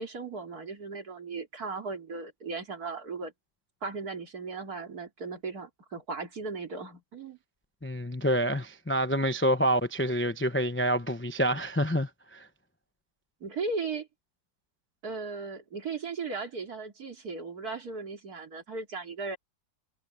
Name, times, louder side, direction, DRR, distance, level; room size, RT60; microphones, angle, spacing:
voice 1, 0.0-3.3 3.8-7.4 13.4-14.1 15.0-19.4, right 4 dB, 55° right, 3.4 m, -37 dB
voice 2, 7.8-12.5, equal, 20° left, 0.3 m, -27 dB
omnidirectional pair, 1.9 m